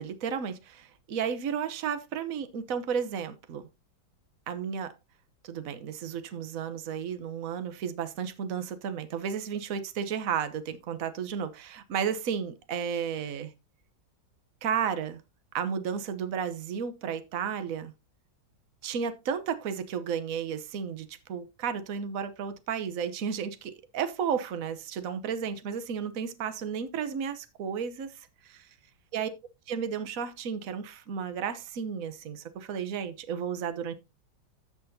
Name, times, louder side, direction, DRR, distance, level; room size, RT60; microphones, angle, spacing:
voice 1, 0.0-3.7 4.5-4.9 5.4-13.5 14.6-15.2 15.5-17.9 18.8-28.6 29.1-29.3 29.7-33.9, right 7 dB, 55° right, 1.3 m, -33 dB
14.5 x 6.2 x 2.8 m
omnidirectional pair, 2.0 m